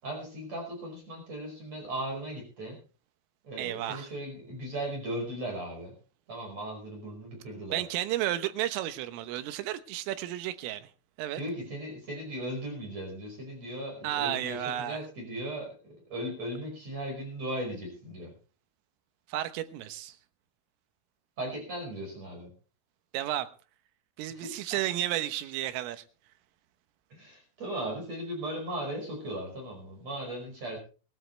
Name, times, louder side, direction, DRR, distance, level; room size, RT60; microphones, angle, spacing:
voice 1, 0.0-2.8 3.4-5.9 6.3-7.8 11.3-18.3 21.4-22.5 24.3-24.5 27.1-30.8, right 1 dB, 35° right, 5.8 m, -37 dB
voice 2, 3.6-4.1 7.7-10.9 11.2-11.4 14.0-15.0 19.3-20.2 23.1-23.5 24.2-26.0, right 13 dB, 90° right, 3.7 m, -32 dB
21.0 x 13.0 x 3.3 m
omnidirectional pair, 5.7 m